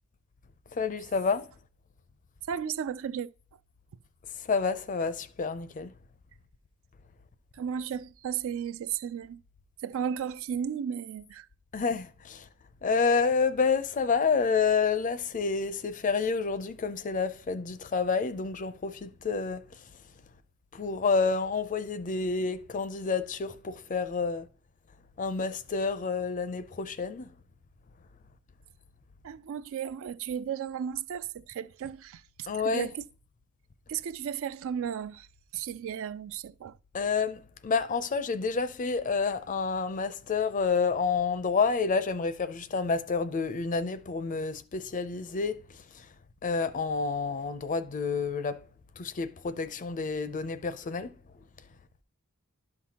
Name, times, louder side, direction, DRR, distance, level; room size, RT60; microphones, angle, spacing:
voice 1, 0.7-1.5 4.4-5.9 11.7-12.5 12.8-19.8 20.7-24.5 25.2-27.3 32.5-32.9 36.9-46.1 46.4-48.6 49.0-51.1, left 5 dB, 35° left, 0.5 m, -29 dB
voice 2, 2.5-3.3 7.6-9.4 9.8-11.5 29.2-33.0 33.9-35.3 35.5-36.8, right 8 dB, 65° right, 0.3 m, -34 dB
11.5 x 5.8 x 2.8 m
head